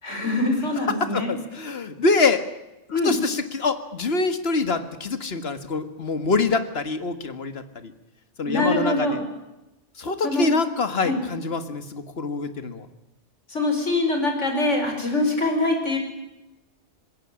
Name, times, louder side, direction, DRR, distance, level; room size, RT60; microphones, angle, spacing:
voice 1, 0.0-1.3 2.9-3.1 8.5-9.2 10.2-10.5 11.0-11.2 13.5-16.0, left 2 dB, 80° left, 4 dB, 5.3 m, -23 dB
voice 2, 0.9-2.4 2.9-7.9 8.4-9.2 10.0-12.9, left 3 dB, 55° left, 11 dB, 1.9 m, -25 dB
21.0 x 17.0 x 9.9 m, 0.96 s
omnidirectional pair, 1.2 m